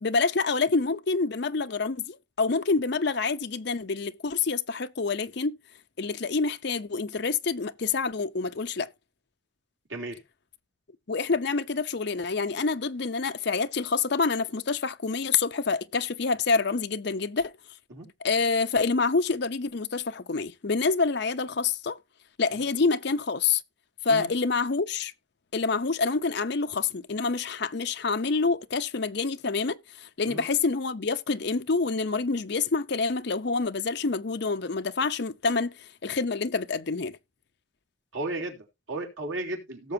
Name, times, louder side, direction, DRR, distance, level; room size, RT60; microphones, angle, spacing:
voice 1, 0.0-5.6 6.0-8.9 11.1-17.5 18.2-22.0 22.4-23.6 24.0-25.1 25.5-37.2, left 4 dB, 55° left, 0.7 m, -27 dB
voice 2, 9.9-10.2 17.9-18.1 24.1-24.3 30.3-30.4 38.1-39.9, right 2 dB, 80° right, 3.4 m, -34 dB
17.5 x 6.9 x 2.7 m
head